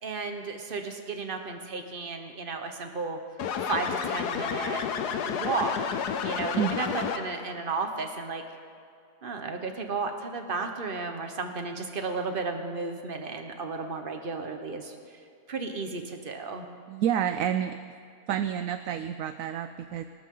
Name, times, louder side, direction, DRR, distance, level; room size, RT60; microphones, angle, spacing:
voice 1, 0.0-3.2 3.6-4.8 5.2-8.4 9.2-15.0 15.5-16.7, right 4 dB, 35° right, 5 dB, 1.3 m, -33 dB
sound 1, 3.4-7.5, left 7 dB, 90° left, 1.4 m, -31 dB
voice 2, 16.9-17.8 18.3-20.1, right 9 dB, 70° right, 10 dB, 0.9 m, -29 dB
19.5 x 19.0 x 3.9 m, 2.3 s
omnidirectional pair, 1.7 m